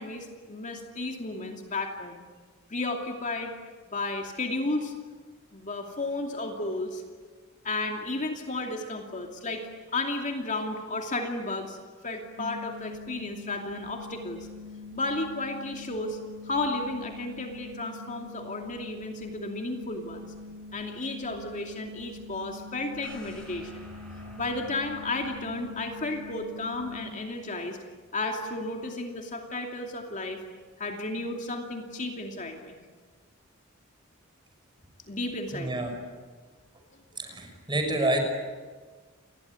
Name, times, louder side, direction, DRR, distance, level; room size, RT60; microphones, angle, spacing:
voice 1, 0.0-2.2 2.7-3.5 3.9-4.9 5.5-7.0 7.6-11.8 12.0-14.5 14.9-16.2 16.4-20.3 20.7-23.8 24.4-27.8 28.1-30.4 30.8-32.8 35.1-35.9, left 2 dB, 40° left, 3 dB, 2.6 m, -33 dB
sound 1, 12.4-27.1, left 3 dB, 60° right, 4.0 m, -44 dB
sound 2, 23.0-27.0 27.4-27.5, equal, 5° left, 7.3 m, -50 dB
voice 2, 35.5-35.9 37.2-38.2, right 1 dB, 20° right, 4 dB, 6.0 m, -28 dB
29.0 x 20.5 x 9.6 m, 1.4 s
head